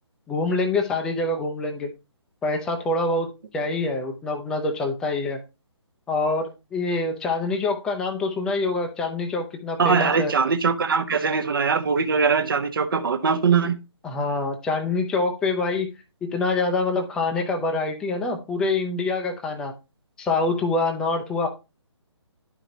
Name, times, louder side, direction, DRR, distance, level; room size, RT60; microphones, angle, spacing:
voice 1, 0.3-1.9 2.4-5.4 6.1-10.3 14.0-15.9 16.2-19.7 20.2-21.5, left 3 dB, 5° left, 0.5 m, -25 dB
voice 2, 9.8-13.8, right 5 dB, 50° right, 0.9 m, -21 dB
11.0 x 4.9 x 2.8 m
figure-of-eight pair, 140°, 15 cm